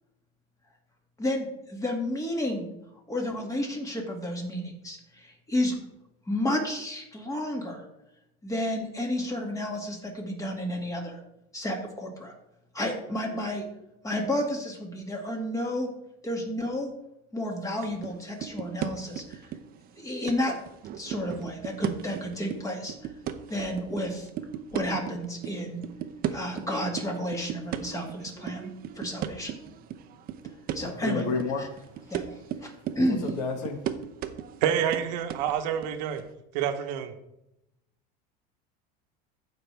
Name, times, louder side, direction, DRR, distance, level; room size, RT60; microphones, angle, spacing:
voice 1, 1.2-2.7 3.1-5.7 6.3-7.8 8.4-11.2 11.5-12.3 12.7-13.6 14.0-15.9 16.2-16.9 17.3-19.5 20.0-20.6 21.0-22.9 23.5-24.3 24.7-25.8 26.3-28.7 29.0-29.6 30.7-31.2 31.6-31.7 32.1-32.2 32.6-32.7 32.9-33.2, left 1 dB, 15° left, 2.3 m, -31 dB
sound 1, 17.8-18.1 18.4-19.9 20.3-25.5 25.8-36.3, right 10 dB, 45° right, 0.8 m, -36 dB
voice 2, 30.8-31.7 33.2-33.8, left 4 dB, 80° left, 1.7 m, -30 dB
voice 3, 34.6-36.2 36.5-37.1, right 9 dB, 80° right, 1.2 m, -27 dB
15.0 x 5.4 x 3.5 m
supercardioid pair, 125°, 21 cm